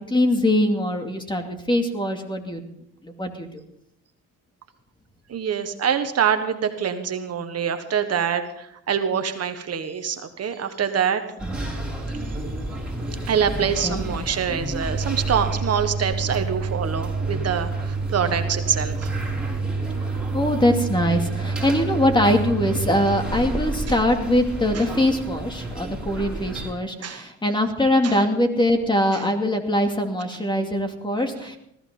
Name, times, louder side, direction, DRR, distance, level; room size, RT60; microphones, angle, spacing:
voice 1, 0.1-2.6 3.0-3.6 11.4-11.6 13.8-14.0 20.1-31.6, left 1 dB, 15° left, 4 dB, 2.5 m, -22 dB
voice 2, 5.3-11.2 13.3-19.3 23.9-24.0 24.7-24.8 27.0-27.3 28.0-28.2 29.1-29.2, right 7 dB, 55° right, 8 dB, 1.4 m, -25 dB
sound 1, 11.4-26.7, right 3 dB, 5° right, 5.9 m, -29 dB
20.0 x 14.5 x 3.9 m, 0.74 s
cardioid pair, 90°, 30 cm